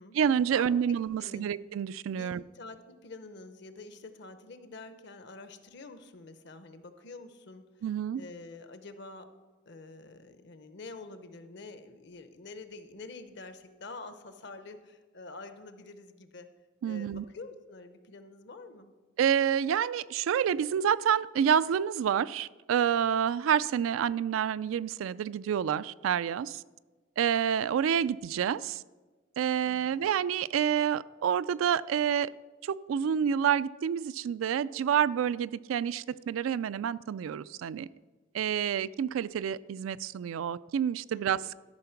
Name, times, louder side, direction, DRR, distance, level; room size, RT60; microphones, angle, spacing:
voice 1, 0.1-2.4 7.8-8.2 16.8-17.2 19.2-26.6 27.2-28.8 29.4-32.3 32.6-37.9 38.3-41.6, right 8 dB, 85° right, 17 dB, 0.3 m, -28 dB
voice 2, 1.2-1.5 2.1-7.8 8.1-9.3 9.7-16.5 16.8-18.9 29.6-30.0 41.1-41.6, left 3 dB, 60° left, 10 dB, 0.8 m, -47 dB
13.0 x 5.7 x 5.8 m, 1.3 s
head